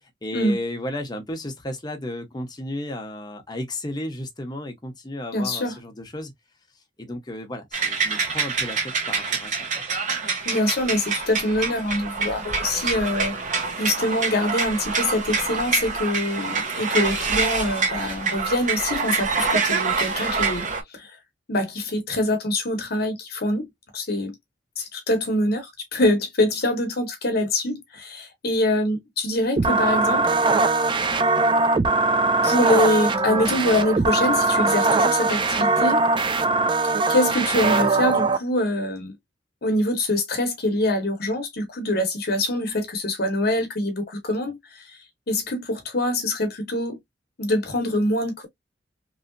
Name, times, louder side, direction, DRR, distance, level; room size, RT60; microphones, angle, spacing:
voice 1, 0.0-6.3 7.0-8.8 9.1-9.6, left 1 dB, 25° left, 0.8 m, -33 dB
voice 2, 5.3-5.8 10.4-20.6 20.9-21.2 21.5-23.7 23.9-24.3 24.8-30.2 32.4-36.0 37.1-39.1 39.6-45.0 45.3-47.0 47.4-48.5, left 1 dB, 55° left, 0.9 m, -24 dB
sound 1, 7.7-20.8, right 4 dB, 45° right, 0.9 m, -26 dB
sound 2, 29.6-38.4, right 3 dB, 25° right, 0.4 m, -21 dB
3.0 x 2.7 x 2.5 m
head